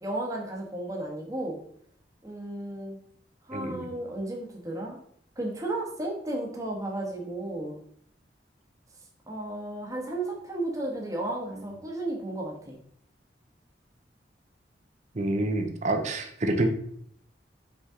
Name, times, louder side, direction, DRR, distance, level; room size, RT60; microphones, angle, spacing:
voice 1, 0.0-1.6 2.2-3.0 3.5-5.0 5.4-7.8 9.3-12.7, right 2 dB, 20° right, -1 dB, 1.2 m, -33 dB
voice 2, 3.5-3.9 15.1-16.7, right 1 dB, 40° right, 6 dB, 0.7 m, -27 dB
5.5 x 5.0 x 3.7 m, 0.65 s
head